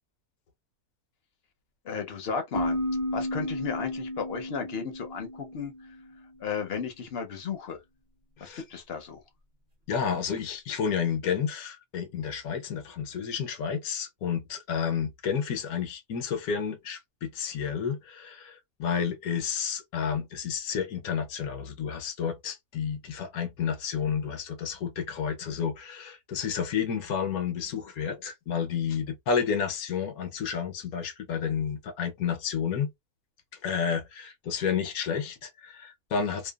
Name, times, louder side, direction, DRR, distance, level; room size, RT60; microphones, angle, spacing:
voice 1, 1.8-2.8 3.1-5.7 6.4-7.8 8.4-9.2, left 6 dB, 55° left, 0.8 m, -34 dB
sound 1, 2.5-6.1, left 1 dB, 35° right, 0.6 m, -33 dB
voice 2, 9.9-32.9 33.6-36.5, left 7 dB, 80° left, 1.2 m, -31 dB
2.8 x 2.2 x 2.3 m
omnidirectional pair, 1.5 m